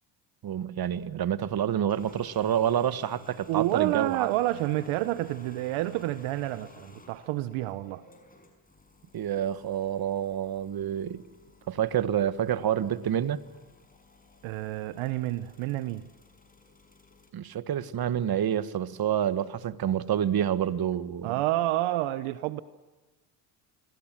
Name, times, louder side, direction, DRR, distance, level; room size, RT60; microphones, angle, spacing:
voice 1, 0.4-4.3 9.1-11.2 11.7-13.4 17.3-21.4, right 10 dB, 45° right, 1.6 m, -28 dB
sound 1, 1.7-17.3, left 4 dB, 15° left, 5.9 m, -55 dB
voice 2, 3.5-8.0 14.4-16.0 21.2-22.6, right 16 dB, 75° right, 1.2 m, -29 dB
28.0 x 22.0 x 7.6 m
supercardioid pair, 80°, 50 cm